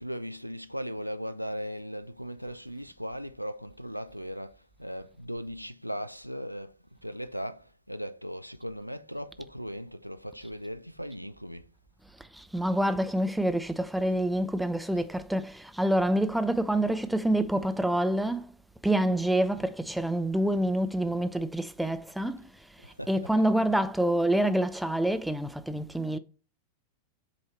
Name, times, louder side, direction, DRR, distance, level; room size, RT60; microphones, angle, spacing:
voice 1, 0.0-6.8 7.0-11.7 22.8-23.5, equal, 90° right, 0.4 m, -38 dB
voice 2, 12.2-18.5 18.8-26.2, right 1 dB, ahead, 0.5 m, -27 dB
7.8 x 2.8 x 4.4 m
figure-of-eight pair, 90°, 0 cm